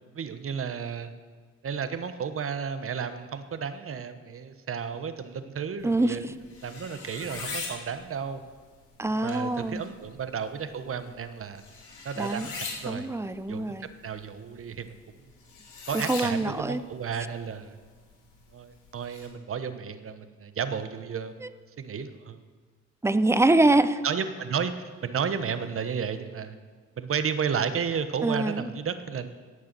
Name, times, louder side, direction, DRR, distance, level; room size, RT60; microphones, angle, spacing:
voice 1, 0.1-1.1 1.6-6.2 6.6-8.4 9.2-11.6 12.0-13.1 13.5-15.0 15.9-17.7 18.5-21.4 21.8-22.4 24.0-26.5 27.0-29.3, right 6 dB, 45° right, 10 dB, 1.1 m, -32 dB
sound 1, 5.8-19.3, left 4 dB, 80° left, 3.1 m, -43 dB
voice 2, 5.8-6.3 9.0-9.8 12.2-12.5 12.9-13.9 15.9-16.8 21.4-21.5 23.0-24.0 28.2-28.7, right 2 dB, 10° right, 13 dB, 0.6 m, -24 dB
18.0 x 6.8 x 6.8 m, 1.5 s
cardioid pair, 90°, 30 cm